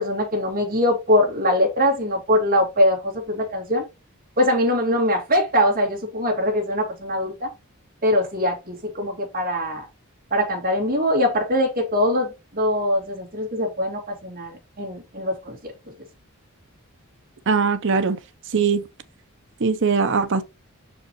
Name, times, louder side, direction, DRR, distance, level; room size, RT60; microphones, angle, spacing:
voice 1, 0.0-3.8 4.4-7.5 8.0-9.8 10.3-15.7, left 1 dB, 45° right, 2.3 m, -22 dB
voice 2, 17.5-18.2 18.5-18.8 19.6-20.4, right 5 dB, 60° right, 0.7 m, -20 dB
6.1 x 5.0 x 3.1 m
head